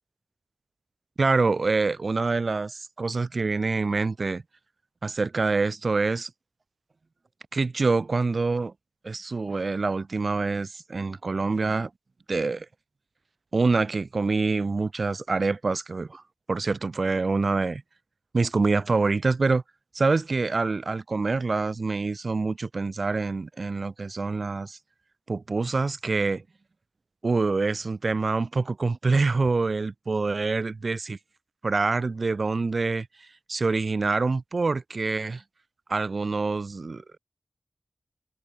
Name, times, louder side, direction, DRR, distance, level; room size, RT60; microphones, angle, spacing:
voice 1, 1.2-4.4 5.0-6.3 7.5-8.7 9.0-11.9 12.3-12.7 13.5-16.2 16.5-17.8 18.3-19.6 19.9-24.8 25.3-26.4 27.2-31.2 31.6-35.4 35.9-37.2, right 3 dB, 60° right, 0.5 m, -26 dB
cardioid pair, 50°, 0 cm